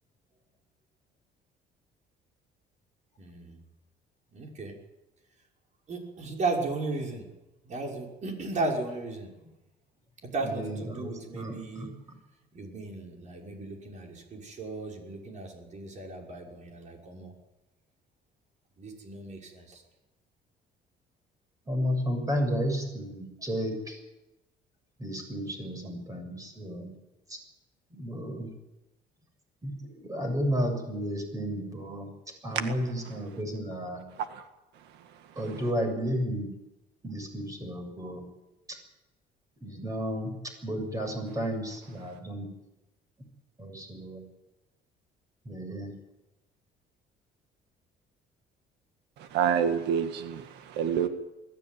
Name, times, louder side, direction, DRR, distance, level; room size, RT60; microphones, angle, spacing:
voice 1, 3.2-3.6 4.3-4.8 5.9-7.3 7.6-9.3 10.2-11.9 12.5-17.3 18.8-19.8, right 3 dB, 45° right, 0 dB, 6.1 m, -35 dB
voice 2, 10.4-12.2 21.7-24.0 25.0-26.9 27.3-27.4 27.9-28.5 29.6-32.1 32.4-34.0 35.4-36.5 37.0-38.3 38.7-38.8 39.6-40.4 40.6-42.5 43.6-44.2 45.5-45.9, equal, 20° right, 4 dB, 7.1 m, -33 dB
voice 3, 49.2-51.1, right 8 dB, 85° right, 8 dB, 1.8 m, -27 dB
21.5 x 14.0 x 9.5 m, 0.98 s
cardioid pair, 110°, 17 cm